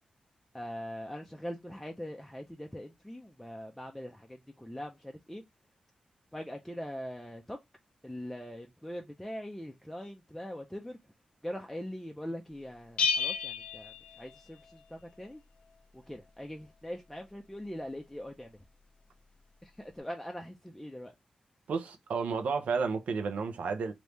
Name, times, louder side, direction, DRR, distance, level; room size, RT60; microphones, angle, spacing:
voice 1, 0.5-5.4 6.3-7.6 8.0-11.0 11.4-15.4 15.9-18.6 19.6-21.1, equal, 5° left, 0.4 m, -42 dB
Bell, 13.0-14.8, left 5 dB, 60° left, 0.6 m, -32 dB
voice 2, 21.7-23.9, right 5 dB, 85° right, 0.7 m, -31 dB
3.0 x 2.6 x 3.4 m
wide cardioid pair, 150°, 2 cm